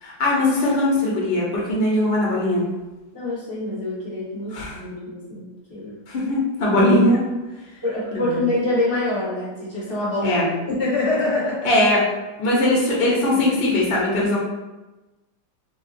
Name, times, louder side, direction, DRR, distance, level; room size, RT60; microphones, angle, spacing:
voice 1, 0.0-2.7 4.5-4.8 6.1-7.2 8.1-8.4 10.2-10.5 11.6-12.0 12.4-14.4, left 1 dB, 55° left, -4 dB, 0.6 m, -20 dB
voice 2, 3.1-5.9 7.8-11.7, left 2 dB, 35° left, -8 dB, 1.0 m, -25 dB
2.8 x 2.7 x 2.4 m, 1.1 s
omnidirectional pair, 2.0 m